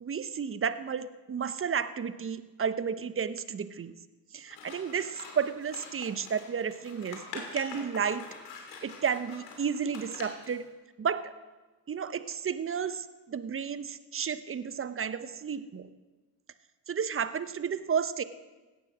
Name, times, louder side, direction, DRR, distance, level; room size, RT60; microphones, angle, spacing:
voice 1, 0.0-3.9 4.3-8.3 8.8-10.6 11.0-11.3 11.9-15.9 16.9-18.2, right 7 dB, 25° right, 13 dB, 0.9 m, -32 dB
Scissors, 4.5-10.6, left 5 dB, 80° left, 2.9 m, -46 dB
16.5 x 11.0 x 6.2 m, 1.2 s
hypercardioid pair, 60°, 48 cm